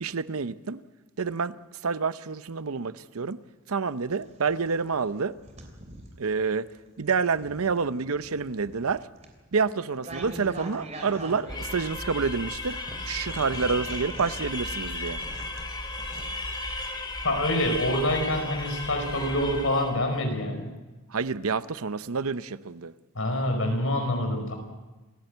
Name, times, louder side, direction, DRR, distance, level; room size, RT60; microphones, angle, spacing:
voice 1, 0.0-0.8 1.2-1.6 1.8-3.4 3.7-5.3 6.2-6.7 7.0-9.1 9.5-12.8 13.1-15.2 21.1-22.9, right 5 dB, 75° right, 0.7 m, -28 dB
sound 1, 4.1-6.3 6.9-12.4 12.9-16.2, right 1 dB, 30° right, 3.2 m, -43 dB
sound 2, 11.5-20.1, left 2 dB, 20° left, 2.3 m, -35 dB
voice 2, 17.2-20.7 23.1-24.5, left 1 dB, 65° left, 5.2 m, -26 dB
27.5 x 15.5 x 7.9 m
head